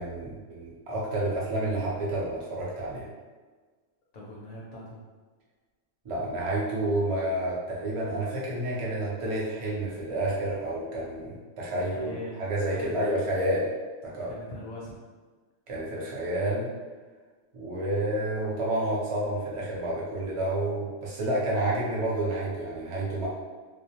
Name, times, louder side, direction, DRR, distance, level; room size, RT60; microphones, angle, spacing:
voice 1, 0.0-3.1 6.0-13.7 14.0-14.3 15.7-16.7 17.5-23.3, right 1 dB, 40° right, -5 dB, 0.4 m, -29 dB
voice 2, 4.1-5.0 11.8-12.4 12.7-13.1 14.3-15.0, left 1 dB, 60° left, -5 dB, 0.5 m, -41 dB
2.3 x 2.0 x 2.8 m, 1.4 s
omnidirectional pair, 1.3 m